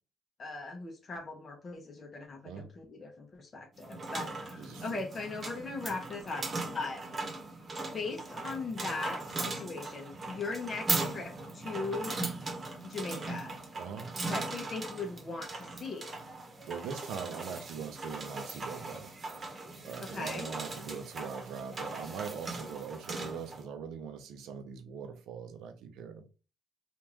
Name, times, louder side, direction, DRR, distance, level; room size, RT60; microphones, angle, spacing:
voice 1, 0.4-7.0 7.9-12.1 12.8-13.6 14.3-16.2 20.1-20.5, left 3 dB, 40° left, 0.9 m, -39 dB
sound 1, 3.8-23.6, right 3 dB, 40° right, 1.0 m, -39 dB
voice 2, 4.5-5.0 13.7-14.1 16.4-19.2 19.5-19.6 19.8-26.3, right 6 dB, 85° right, 0.7 m, -42 dB
3.6 x 2.5 x 3.0 m
cardioid pair, 90°, 0 cm